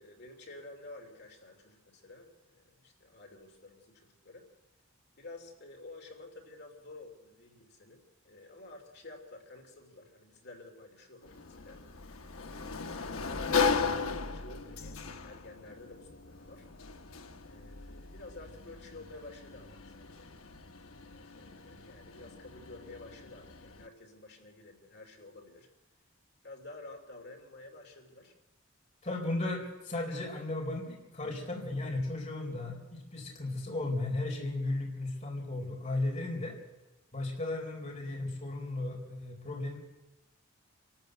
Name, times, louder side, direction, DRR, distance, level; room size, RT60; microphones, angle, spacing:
voice 1, 0.0-4.5 5.1-11.8 12.5-16.7 17.4-20.3 21.0-25.7 26.4-28.3, left 2 dB, 50° left, 2 dB, 3.0 m, -51 dB
Sliding door, 11.2-23.9, left 5 dB, 85° left, 1.0 m, -37 dB
voice 2, 29.0-36.5 37.1-39.8, left 2 dB, 35° left, -1 dB, 4.1 m, -35 dB
25.5 x 13.0 x 7.9 m, 1.0 s
head